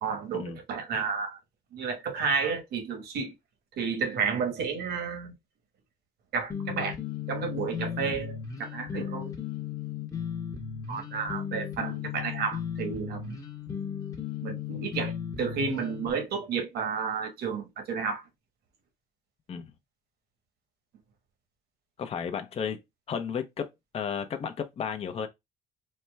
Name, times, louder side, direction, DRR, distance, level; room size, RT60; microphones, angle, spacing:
voice 1, 0.0-1.4 1.7-3.3 3.8-5.3 6.3-7.0 7.3-9.3 10.9-13.4 14.4-18.2, right 5 dB, 70° right, 1.4 m, -31 dB
sound 1, 6.5-16.1, left 8 dB, 20° left, 0.9 m, -36 dB
voice 2, 22.0-22.8 23.1-25.3, left 7 dB, 35° left, 0.6 m, -33 dB
4.3 x 2.1 x 3.3 m
cardioid pair, 110°, 17 cm